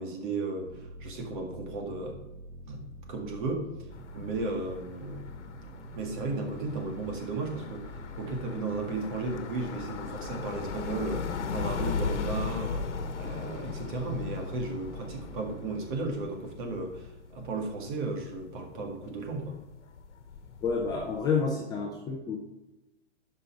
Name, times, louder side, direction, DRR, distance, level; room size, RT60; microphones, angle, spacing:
voice 1, 0.0-2.2 2.7-3.7 4.1-5.3 5.9-19.6, right 3 dB, 45° right, 2 dB, 1.9 m, -35 dB
Bad on Maths Good on Meth, 0.6-15.8, right 1 dB, 70° right, 1.6 m, -46 dB
sound 1, 3.9-21.2, left 5 dB, 80° left, 1.1 m, -38 dB
voice 2, 20.6-22.4, left 5 dB, 10° left, -2 dB, 0.6 m, -29 dB
10.5 x 5.5 x 4.7 m, 0.99 s
hypercardioid pair, 150°, 35 cm